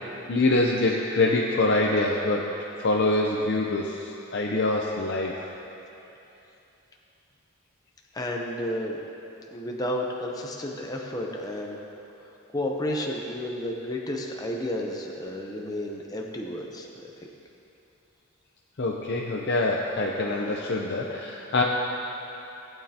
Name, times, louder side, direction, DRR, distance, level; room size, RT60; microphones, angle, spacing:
voice 1, 0.3-2.5 2.8-5.5 18.8-21.6, left 2 dB, 55° left, -1 dB, 0.6 m, -25 dB
voice 2, 8.1-9.0 9.5-11.8 12.5-16.9 17.2-17.3, left 1 dB, 20° left, -1 dB, 0.7 m, -31 dB
18.0 x 9.0 x 2.9 m, 2.9 s
head